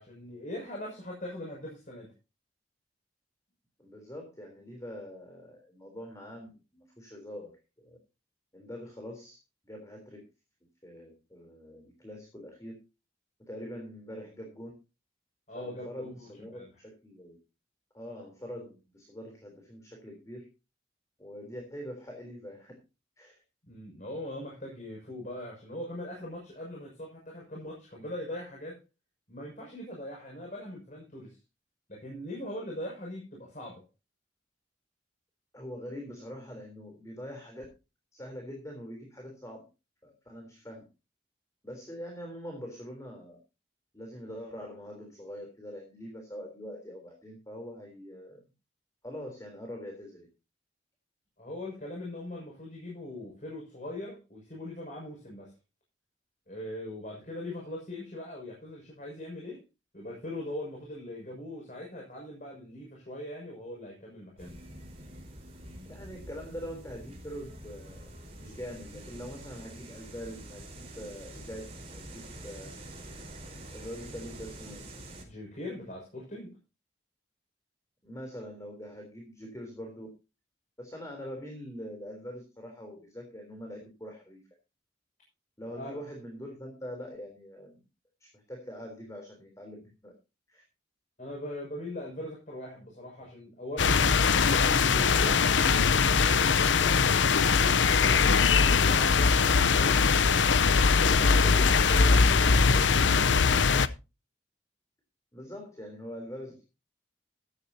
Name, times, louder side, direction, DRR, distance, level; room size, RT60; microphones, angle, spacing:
voice 1, 0.0-2.1 15.5-16.7 23.7-28.8 29.3-31.4 31.9-33.8 51.4-55.5 56.5-59.6 59.9-64.5 75.2-76.6 85.7-86.0 91.2-97.2 97.6-100.0 101.0-103.5, left 1 dB, 40° left, -2 dB, 6.4 m, -40 dB
voice 2, 3.8-7.6 7.8-8.0 8.5-9.4 9.6-10.2 10.8-12.7 13.4-14.7 15.5-17.4 17.9-20.5 21.2-22.7 23.2-23.3 35.5-37.7 38.1-39.6 40.0-40.8 41.6-43.4 43.9-48.4 49.0-50.3 65.9-68.1 68.4-70.7 71.0-72.7 73.7-74.8 78.0-80.1 80.8-84.4 85.6-87.8 88.2-90.1 90.5-90.6 105.3-106.6, equal, 15° left, 2 dB, 3.5 m, -43 dB
sound 1, 64.4-75.2, right 1 dB, 35° right, 4.5 m, -46 dB
sound 2, 93.8-103.9, left 5 dB, 80° left, 0.7 m, -22 dB
15.0 x 13.0 x 2.8 m, 0.29 s
head